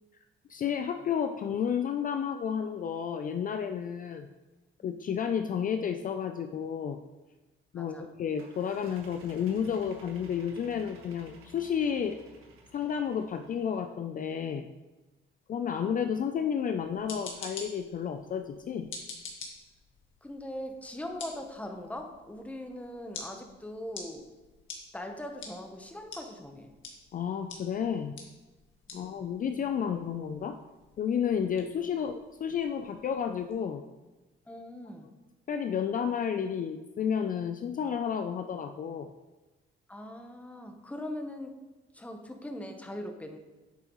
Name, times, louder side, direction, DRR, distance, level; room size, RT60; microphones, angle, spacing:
voice 1, 0.5-4.3 4.8-7.0 7.7-12.2 12.7-14.7 15.5-18.9 27.1-28.1 28.9-30.6 31.0-33.8 35.5-39.1, left 7 dB, 40° left, 7 dB, 0.4 m, -31 dB
voice 2, 7.8-8.1 20.2-24.2 24.9-26.7 28.9-29.3 34.5-35.1 39.9-41.6 41.9-43.4, left 1 dB, 5° left, 4 dB, 0.9 m, -41 dB
sound 1, 8.4-13.9, right 3 dB, 90° right, 1.5 m, -55 dB
sound 2, 16.8-33.6, left 4 dB, 70° left, 1.7 m, -48 dB
9.5 x 7.4 x 3.0 m, 1.1 s
cardioid pair, 140°, 21 cm